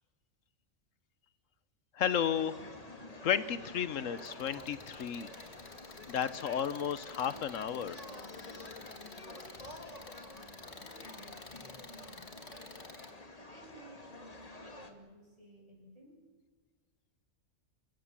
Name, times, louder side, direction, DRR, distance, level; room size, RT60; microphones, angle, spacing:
voice 1, 1.9-2.6 3.2-5.3 6.1-8.0, left 8 dB, 80° left, 14 dB, 1.2 m, -33 dB
sound 1, 2.1-14.9, left 2 dB, 30° left, 2.1 m, -49 dB
sound 2, 4.2-13.1, left 3 dB, 55° left, 2.4 m, -52 dB
voice 2, 10.7-11.5 11.9-12.3 13.4-16.2, right 1 dB, 25° right, -1 dB, 7.9 m, -56 dB
28.5 x 16.5 x 7.4 m, 1.4 s
omnidirectional pair, 1.3 m